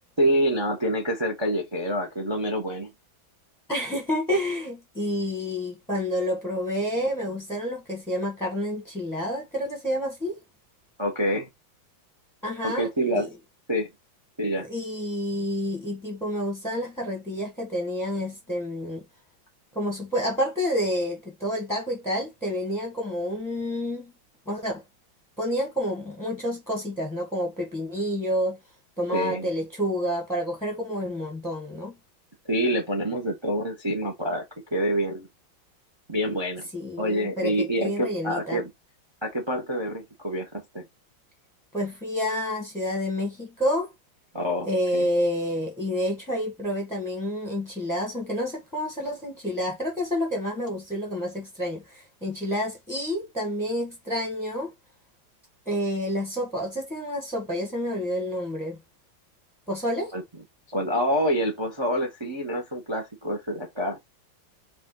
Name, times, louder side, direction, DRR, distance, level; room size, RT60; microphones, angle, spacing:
voice 1, 0.2-2.9 11.0-11.5 12.6-13.3 13.7-13.9 14.4-14.7 29.1-29.5 32.5-34.4 34.7-35.3 36.1-36.6 37.0-38.7 39.2-40.5 40.7-40.8 44.3-45.0 60.1-60.2 60.7-64.0, equal, 30° right, 0.5 m, -26 dB
voice 2, 3.7-10.4 12.4-12.9 13.1-13.3 14.6-19.0 19.7-24.1 24.5-24.8 25.4-28.6 29.0-31.9 36.7-38.6 41.7-43.9 44.6-54.7 55.7-58.8 59.7-60.1, equal, ahead, 0.9 m, -29 dB
4.9 x 2.6 x 3.7 m
omnidirectional pair, 2.2 m